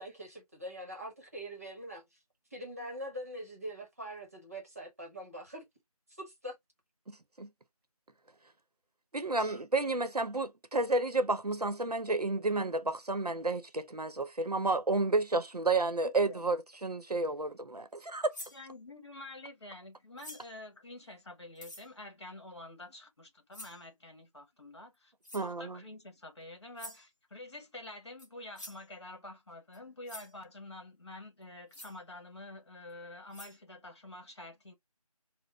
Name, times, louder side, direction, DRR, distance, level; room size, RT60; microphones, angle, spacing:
voice 1, 0.0-2.2 2.5-5.6 6.1-6.5 17.2-17.3, equal, 25° right, 1.0 m, -43 dB
voice 2, 7.1-7.5 9.1-18.3 25.3-25.8, right 3 dB, 85° right, 0.8 m, -31 dB
voice 3, 16.0-16.4 18.5-34.7, left 2 dB, 45° left, 1.5 m, -48 dB
sound 1, 18.3-18.6 20.2-20.6 21.6-21.9 23.5-23.9 25.2-25.5 26.8-27.1 28.2-28.3 28.6-28.9 29.7-29.8 30.1-30.3 31.7-32.0 32.9-33.0 33.3-33.6, left 1 dB, 30° left, 0.9 m, -47 dB
4.4 x 2.1 x 3.0 m
figure-of-eight pair, 165°, 20 cm